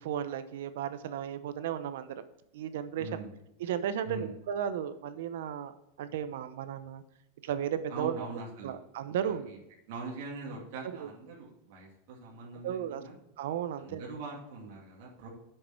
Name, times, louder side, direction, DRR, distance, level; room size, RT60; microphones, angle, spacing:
voice 1, 0.0-2.1 2.5-3.1 3.6-7.0 7.4-8.3 8.6-9.6 11.0-11.1 12.6-13.0 13.4-14.0, right 9 dB, 70° right, 12 dB, 0.8 m, -34 dB
voice 2, 3.0-3.3 4.0-4.3 7.9-8.8 9.2-9.6 9.9-13.2 13.8-15.3, right 3 dB, 55° right, -3 dB, 2.5 m, -42 dB
7.9 x 6.6 x 4.5 m, 0.85 s
supercardioid pair, 170°, 0 cm